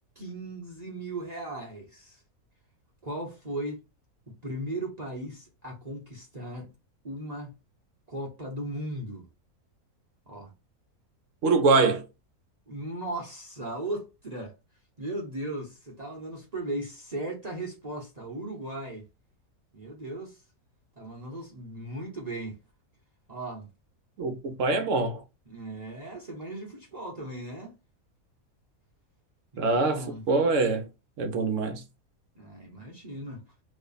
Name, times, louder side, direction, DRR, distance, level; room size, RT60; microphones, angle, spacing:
voice 1, 0.2-2.2 3.0-3.8 4.4-6.7 7.0-7.5 8.1-9.3 10.3-10.5 12.7-14.5 15.0-19.1 19.7-20.4 21.0-22.6 23.3-23.7 25.5-27.7 29.5-30.2 32.3-33.4, right 1 dB, 30° right, 0.9 m, -37 dB
voice 2, 11.4-12.0 24.2-25.2 29.6-30.9 31.2-31.8, right 3 dB, 65° right, 1.0 m, -24 dB
3.1 x 2.2 x 3.9 m
omnidirectional pair, 1.5 m